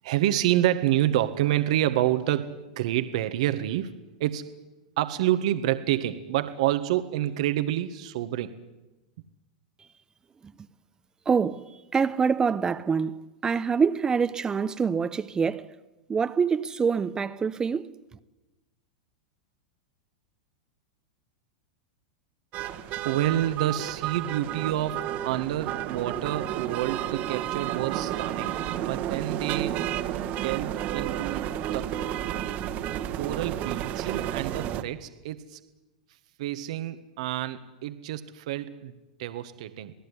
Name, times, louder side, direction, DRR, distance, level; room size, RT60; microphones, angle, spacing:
voice 1, 0.0-3.9 4.2-4.5 5.0-8.5 23.0-28.5 28.8-29.8 30.2-31.9 33.1-35.6 36.4-38.9 39.2-39.9, right 13 dB, 65° right, 1.7 m, -28 dB
voice 2, 11.3-11.6 11.9-15.7 16.1-17.9, right 6 dB, 20° right, 1.1 m, -25 dB
sound 1, 22.5-34.8, right 11 dB, 45° right, 1.8 m, -31 dB
27.5 x 18.0 x 10.0 m
hypercardioid pair, 115°, 4 cm